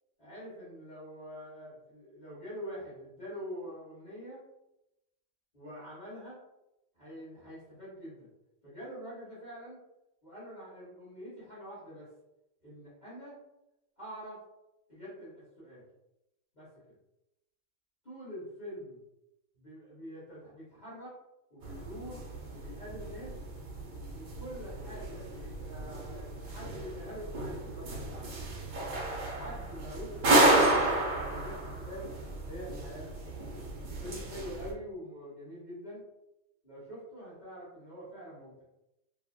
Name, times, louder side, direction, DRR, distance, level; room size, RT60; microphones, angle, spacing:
voice 1, 0.2-4.4 5.5-6.4 6.9-8.3 8.6-9.8 10.2-12.1 12.6-13.4 14.0-14.4 14.9-15.8 16.5-16.9 18.0-19.0 19.5-21.1 21.5-22.2 22.5-23.3 24.1-28.4 29.2-30.8 31.1-32.1 32.5-33.4 34.0-36.0 36.6-38.6, equal, 30° left, -10 dB, 1.2 m, -45 dB
sound 1, 21.6-34.7, right 1 dB, 55° right, 0.6 m, -32 dB
2.8 x 2.6 x 2.4 m, 0.92 s
omnidirectional pair, 1.6 m